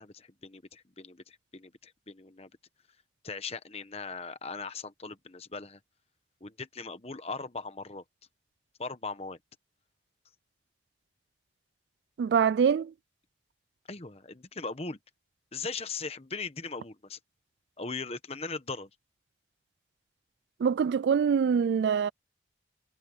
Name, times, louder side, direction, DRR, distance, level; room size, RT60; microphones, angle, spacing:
voice 1, 0.0-2.5 3.2-5.8 6.4-8.0 8.8-9.4 13.9-15.0 15.5-17.2 17.8-18.9, left 4 dB, 35° left, 1.2 m, -39 dB
voice 2, 12.2-12.9 20.6-22.1, right 7 dB, 75° right, 0.3 m, -24 dB
head